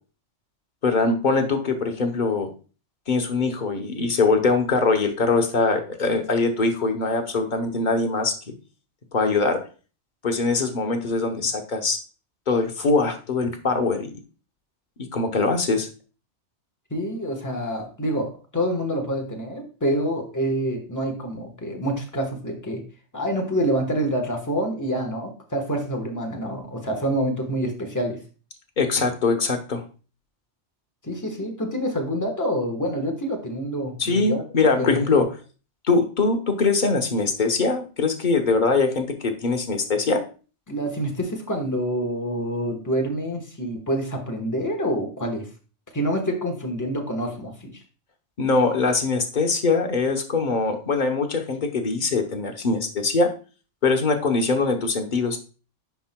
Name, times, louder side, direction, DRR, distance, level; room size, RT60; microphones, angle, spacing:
voice 1, 0.8-2.5 3.1-8.5 9.1-9.6 10.2-12.0 12.5-14.1 15.1-15.9 28.8-29.8 34.0-35.3 35.8-40.2 48.4-53.3 53.8-55.4, left 3 dB, 45° left, 5 dB, 1.0 m, -22 dB
voice 2, 16.9-22.8 23.1-28.2 31.0-34.4 34.8-35.2 40.7-45.5 45.9-47.8, equal, 15° left, 2 dB, 1.2 m, -27 dB
10.0 x 4.7 x 2.2 m, 0.36 s
omnidirectional pair, 1.2 m